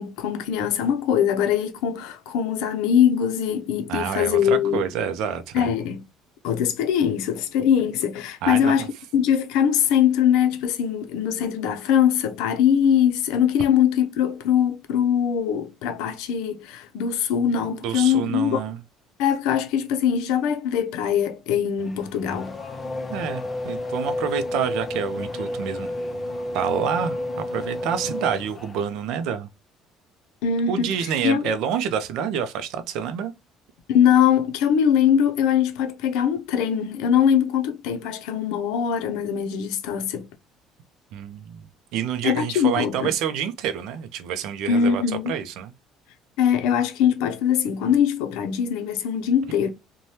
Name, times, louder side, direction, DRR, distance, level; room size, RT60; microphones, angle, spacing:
voice 1, 0.0-4.8 5.5-6.0 6.4-8.9 9.1-18.6 19.2-22.6 30.4-31.4 33.9-40.3 42.2-43.1 44.7-45.3 46.4-49.7, left 8 dB, 85° left, 0.5 m, -22 dB
voice 2, 3.9-5.7 8.4-8.7 17.8-18.8 23.1-25.9 26.5-29.5 30.7-33.3 41.1-45.7, right 8 dB, 75° right, 0.4 m, -28 dB
Race car auto racing / Accelerating revving vroom, 21.8-29.0, left 1 dB, 20° left, 0.5 m, -31 dB
2.7 x 2.2 x 3.1 m
cardioid pair, 130°, 0 cm